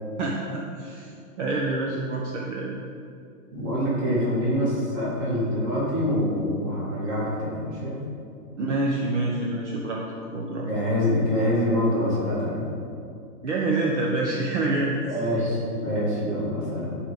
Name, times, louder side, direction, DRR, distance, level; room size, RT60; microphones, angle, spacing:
voice 1, 0.2-1.1 1.4-2.7 8.6-10.0 10.3-10.7 13.4-15.0, right 2 dB, 50° right, -2 dB, 1.1 m, -26 dB
voice 2, 3.5-8.0 10.7-12.6 15.1-16.9, equal, 20° right, -7 dB, 2.8 m, -25 dB
14.0 x 4.9 x 5.4 m, 2.5 s
hypercardioid pair, 170°, 46 cm